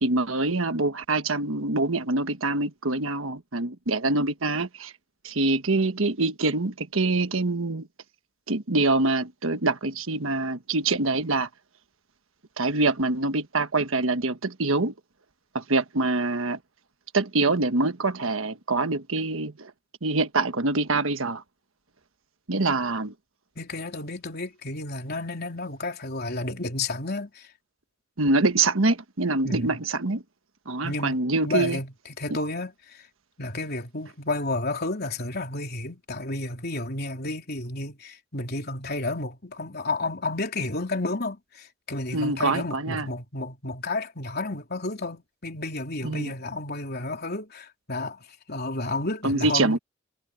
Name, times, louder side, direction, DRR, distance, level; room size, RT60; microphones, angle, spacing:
voice 1, 0.0-4.9 5.2-7.9 8.5-11.5 12.6-14.9 15.5-16.6 17.1-19.7 20.0-21.4 22.5-23.1 28.2-30.2 30.7-31.8 42.1-43.1 46.0-46.3 49.2-49.8, right 2 dB, 75° right, 1.4 m, -25 dB
voice 2, 23.6-27.5 29.4-29.8 30.8-31.2 31.4-33.0 33.4-48.2 48.5-49.8, left 2 dB, 50° left, 3.8 m, -31 dB
head